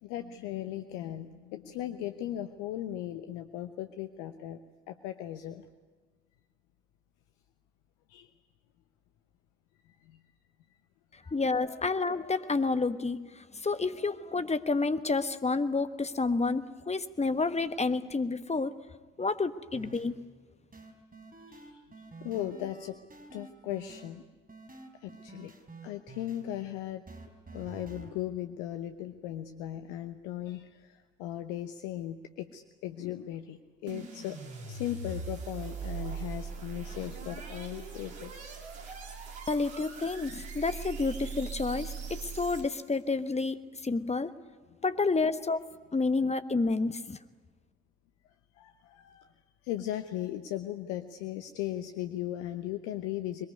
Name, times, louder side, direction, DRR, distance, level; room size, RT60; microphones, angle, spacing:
voice 1, 0.0-4.6 4.9-5.7 8.1-8.3 10.0-10.2 21.5-23.0 23.3-24.2 24.9-25.5 25.8-27.0 27.5-34.4 34.7-38.5 48.5-49.3 49.6-53.5, left 12 dB, 70° left, 9 dB, 1.0 m, -37 dB
voice 2, 11.3-18.7 19.2-20.1 39.5-44.3 44.8-45.6 45.9-47.2, left 3 dB, 20° left, 12 dB, 1.3 m, -29 dB
sound 1, 19.7-20.1 20.7-24.1 24.5-26.4 27.1-28.1, right 3 dB, 25° right, 4.5 m, -48 dB
sound 2, 33.9-43.0, right 5 dB, 80° right, 2.6 m, -40 dB
22.0 x 20.0 x 9.7 m, 1.4 s
figure-of-eight pair, 45°, 33 cm